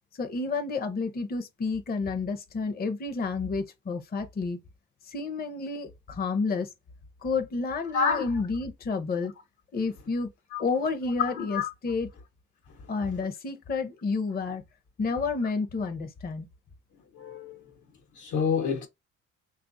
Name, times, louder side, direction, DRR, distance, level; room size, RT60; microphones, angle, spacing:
voice 1, 0.2-4.6 5.1-6.7 7.2-9.3 9.7-10.3 10.6-12.1 12.9-14.6 15.0-16.5, left 4 dB, 30° left, 0.6 m, -30 dB
voice 2, 7.9-8.4 10.5-10.6 11.3-11.7 12.8-12.9 17.1-17.6 18.1-18.9, left 5 dB, 75° left, 1.0 m, -29 dB
3.6 x 2.4 x 2.5 m
cardioid pair, 90°, 30 cm